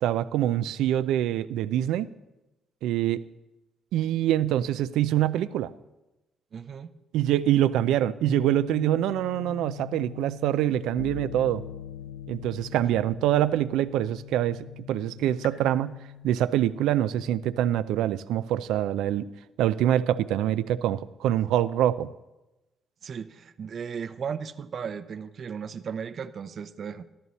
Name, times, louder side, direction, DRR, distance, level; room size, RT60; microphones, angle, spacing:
voice 1, 0.0-2.1 2.8-3.2 3.9-5.7 7.1-11.6 12.3-16.0 16.2-19.2 19.6-22.1, right 12 dB, 90° right, 14 dB, 0.5 m, -25 dB
voice 2, 6.5-6.9 23.0-27.0, right 6 dB, 55° right, 11 dB, 0.7 m, -36 dB
sound 1, 8.3-17.9, left 12 dB, 85° left, 1.0 m, -42 dB
14.0 x 12.5 x 4.1 m, 1.0 s
cardioid pair, 90°, 0 cm